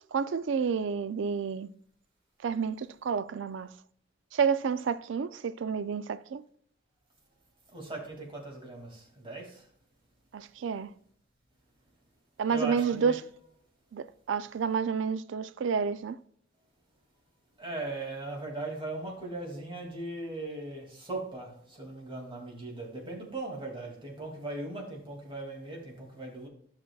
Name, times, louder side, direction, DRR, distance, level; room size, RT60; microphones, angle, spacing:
voice 1, 0.1-1.7 2.4-3.7 4.3-6.4 10.3-10.9 12.4-13.2 13.9-16.2, right 6 dB, 70° right, 0.4 m, -30 dB
voice 2, 7.7-9.7 12.5-13.2 17.6-26.5, right 2 dB, 25° right, 2.4 m, -39 dB
12.5 x 6.1 x 2.3 m
head